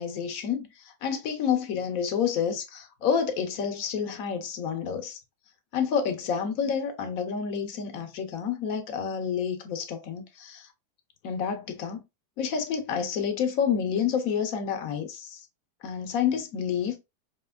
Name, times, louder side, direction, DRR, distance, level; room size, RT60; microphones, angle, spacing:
voice 1, 0.0-5.2 5.7-10.7 11.2-12.0 12.4-15.5 15.8-17.0, left 7 dB, 65° left, 1.0 m, -29 dB
4.9 x 2.8 x 2.3 m
omnidirectional pair, 1.7 m